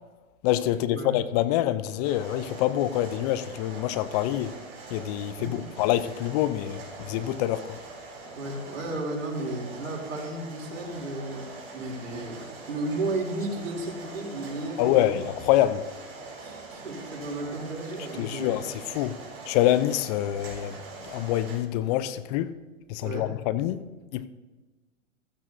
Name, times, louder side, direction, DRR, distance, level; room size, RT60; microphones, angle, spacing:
voice 1, 0.4-4.5 4.9-7.8 14.8-15.9 18.2-19.2 19.5-20.8 21.0-22.5 22.9-23.8 24.1-24.3, left 13 dB, 30° left, 0.5 m, -26 dB
sound 1, 2.0-21.6, right 3 dB, 35° right, 4.2 m, -43 dB
voice 2, 5.4-5.7 8.3-15.2 16.4-18.7 23.0-23.3, right 2 dB, 75° right, 3.1 m, -34 dB
15.0 x 13.0 x 2.7 m
hypercardioid pair, 120°, 40 cm